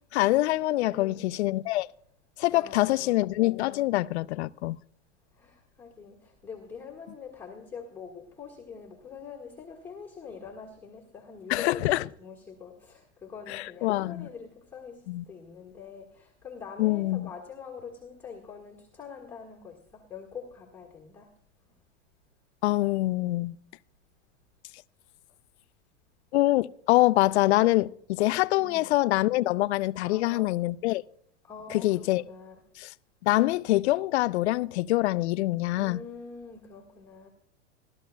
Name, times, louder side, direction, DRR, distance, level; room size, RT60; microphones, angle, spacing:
voice 1, 0.1-1.9 2.4-4.8 11.5-12.1 13.5-14.3 15.1-15.2 16.8-17.3 22.6-23.5 26.3-31.0 31.7-32.2 32.8-32.9 33.2-36.0, left 17 dB, 65° left, 0.5 m, -25 dB
voice 2, 0.9-1.2 2.5-3.2 5.4-21.3 28.6-28.9 30.0-30.5 31.5-32.5 35.8-37.3, left 5 dB, 5° left, 1.5 m, -44 dB
16.5 x 12.5 x 2.2 m
supercardioid pair, 150°, 36 cm